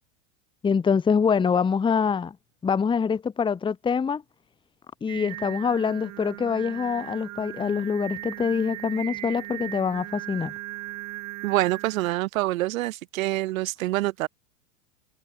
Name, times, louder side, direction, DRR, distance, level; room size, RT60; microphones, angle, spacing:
voice 1, 0.6-2.4 2.6-4.2 5.0-10.5, left 6 dB, 10° left, 1.0 m, -25 dB
Singing, 5.1-12.1, right 17 dB, 40° right, 6.3 m, -38 dB
voice 2, 11.4-14.3, right 17 dB, 70° right, 2.5 m, -26 dB
supercardioid pair, 125°, 41 cm